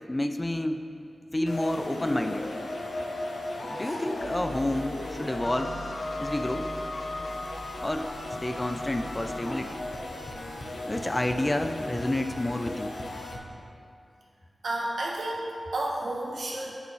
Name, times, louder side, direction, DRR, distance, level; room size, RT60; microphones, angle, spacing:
voice 1, 0.1-0.9 1.3-2.5 3.7-5.7 6.2-6.7 7.8-9.8 10.9-13.0, left 1 dB, 20° left, 8 dB, 0.3 m, -29 dB
sound 1, 1.5-13.4, left 2 dB, 85° left, 0.7 m, -36 dB
sound 2, 4.2-12.2, right 1 dB, 55° right, 0.7 m, -46 dB
sound 3, 8.3-8.7 9.0-9.4 9.6-9.7 9.9-13.4, left 1 dB, 50° left, 0.9 m, -44 dB
voice 2, 14.6-16.7, right 1 dB, 85° right, -3 dB, 1.2 m, -31 dB
9.5 x 5.6 x 3.0 m, 2.4 s
wide cardioid pair, 100°, 0 cm